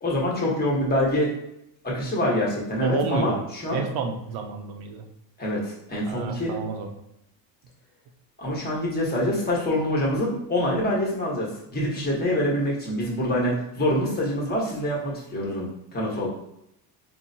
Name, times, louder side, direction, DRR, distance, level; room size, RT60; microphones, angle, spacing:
voice 1, 0.0-1.3 1.8-3.8 5.4-6.6 8.4-16.3, left 1 dB, 20° left, -4 dB, 1.3 m, -25 dB
voice 2, 2.8-3.4 3.7-5.0 6.1-6.9, right 5 dB, 55° right, 5 dB, 0.8 m, -30 dB
4.7 x 3.2 x 2.8 m, 0.81 s
cardioid pair, 145°, 45 cm